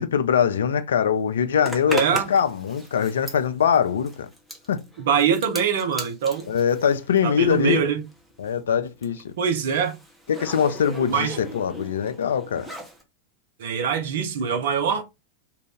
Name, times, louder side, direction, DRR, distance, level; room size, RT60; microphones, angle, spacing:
voice 1, 0.0-2.0 2.3-4.3 4.7-4.8 6.5-7.8 8.4-9.3 10.3-12.7, left 8 dB, 65° left, 0.3 m, -22 dB
Zipper (clothing), 1.6-7.8 8.1-13.0, equal, ahead, 0.8 m, -38 dB
voice 2, 1.9-2.3 5.0-6.5 7.2-8.0 9.4-9.9 11.1-11.4 13.6-15.0, right 7 dB, 55° right, 0.7 m, -23 dB
2.6 x 2.2 x 3.3 m
figure-of-eight pair, 90°, 0 cm